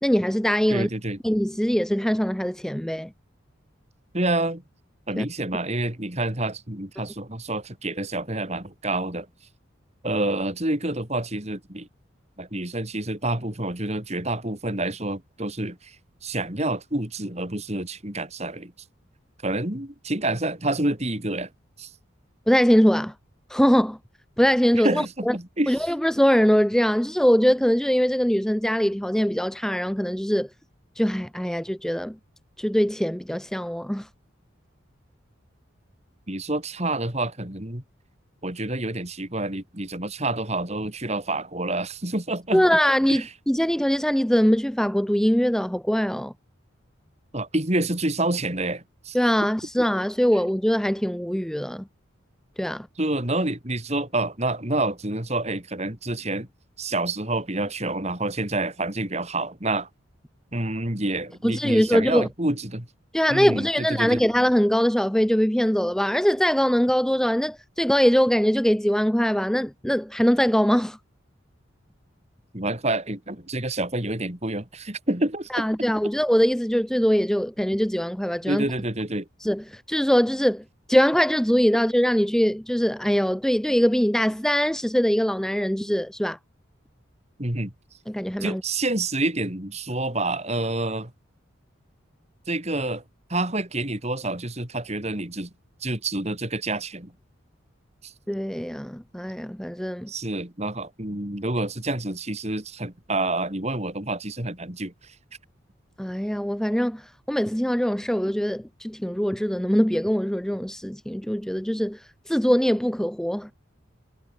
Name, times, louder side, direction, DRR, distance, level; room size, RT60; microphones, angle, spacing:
voice 1, 0.0-0.9 1.2-3.1 5.2-5.3 22.5-23.1 23.5-24.0 24.4-25.3 25.7-30.5 31.0-32.2 32.6-34.1 42.5-46.3 49.1-51.8 52.6-52.9 61.4-62.3 63.1-71.0 75.5-78.6 79.4-80.6 80.9-86.4 88.1-88.6 98.3-100.1 106.0-113.5, equal, 5° left, 0.6 m, -22 dB
voice 2, 0.7-1.2 4.1-4.6 5.1-9.3 10.0-11.9 12.4-16.0 16.2-18.7 19.4-21.5 21.8-21.9 24.8-25.7 36.3-37.8 38.4-42.6 43.1-43.2 47.3-49.2 53.0-56.5 56.8-59.9 60.5-62.9 63.3-64.2 72.5-75.6 78.5-79.3 87.4-87.7 88.4-91.1 92.5-93.0 93.3-95.5 95.8-97.1 98.0-98.1 100.1-104.9, right 2 dB, 35° right, 3.4 m, -28 dB
head